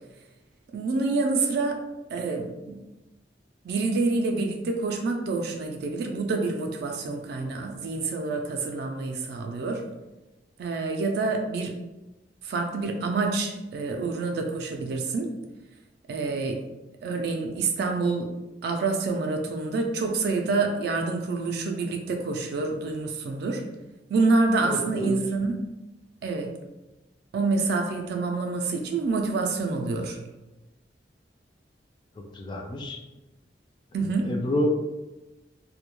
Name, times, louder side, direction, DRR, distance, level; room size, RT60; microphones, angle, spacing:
voice 1, 0.7-1.8 2.1-2.8 3.6-9.8 10.6-11.7 12.4-15.3 16.1-16.6 17.0-18.3 18.6-23.6 24.1-25.5 26.2-26.5 27.3-30.2 33.9-34.3, right 3 dB, 65° right, 3 dB, 0.3 m, -27 dB
voice 2, 24.6-25.2 32.2-33.0 34.0-34.8, left 1 dB, 25° left, 2 dB, 0.3 m, -29 dB
2.1 x 2.1 x 2.9 m, 1.0 s
head